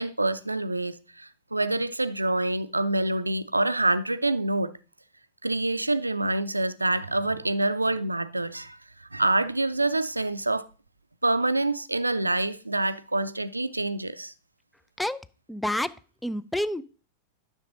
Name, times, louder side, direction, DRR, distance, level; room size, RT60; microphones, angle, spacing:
voice 1, 0.0-4.7 5.4-8.8 9.1-10.7 11.2-14.3, right 2 dB, 85° right, 0.4 m, -26 dB
voice 2, 15.5-15.9 16.2-16.8, left 1 dB, 5° left, 0.4 m, -28 dB
9.6 x 6.5 x 3.9 m
figure-of-eight pair, 90°, 0 cm